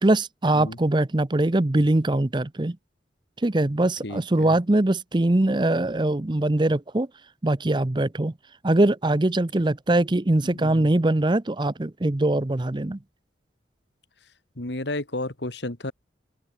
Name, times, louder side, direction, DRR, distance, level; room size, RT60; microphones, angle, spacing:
voice 1, 0.0-2.8 3.4-7.1 7.4-8.3 8.6-13.0, right 1 dB, 25° right, 0.6 m, -22 dB
voice 2, 4.0-4.6 10.4-10.9 14.6-15.9, left 2 dB, 65° left, 2.2 m, -32 dB
open air
head